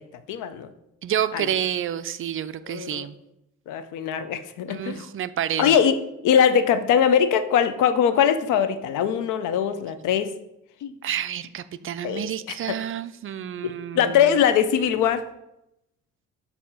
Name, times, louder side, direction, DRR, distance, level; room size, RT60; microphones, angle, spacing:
voice 1, 0.3-0.7 1.3-1.5 2.7-3.1 3.7-5.1 5.6-5.9 6.2-10.3 10.8-10.9 12.0-12.6 13.6-15.2, left 8 dB, 90° left, 11 dB, 0.6 m, -21 dB
voice 2, 1.0-3.2 4.7-5.8 11.0-14.3, right 10 dB, 45° right, 13 dB, 0.4 m, -29 dB
6.7 x 2.8 x 5.5 m, 0.84 s
cardioid pair, 90°, 30 cm